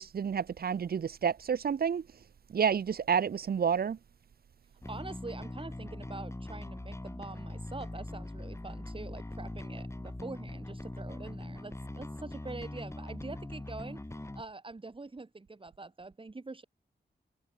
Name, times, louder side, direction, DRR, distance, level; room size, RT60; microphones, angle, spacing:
voice 1, 0.0-2.0 2.5-4.0, right 7 dB, 55° right, 0.7 m, -29 dB
Bass guitar, 4.8-14.4, left 1 dB, 15° left, 4.6 m, -41 dB
voice 2, 4.9-14.0 14.3-16.6, right 3 dB, 30° right, 3.5 m, -45 dB
wide cardioid pair, 115°, 18 cm